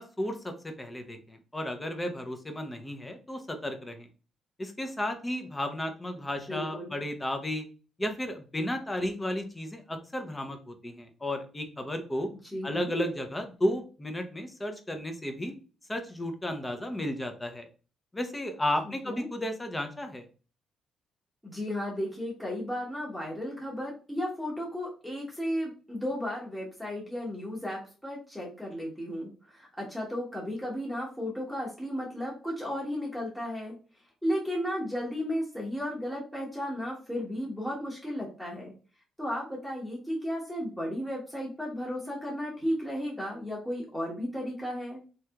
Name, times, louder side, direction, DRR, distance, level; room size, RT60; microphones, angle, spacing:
voice 1, 0.0-4.1 4.6-7.6 8.0-12.3 12.6-15.5 15.9-17.7 18.1-20.3, left 1 dB, 15° left, 6 dB, 0.6 m, -33 dB
voice 2, 6.5-6.9 12.5-12.9 19.0-19.3 21.4-33.7 34.2-38.7 39.2-45.0, equal, ahead, -5 dB, 1.1 m, -34 dB
3.1 x 2.8 x 2.3 m, 0.37 s
cardioid pair, 90°, 0 cm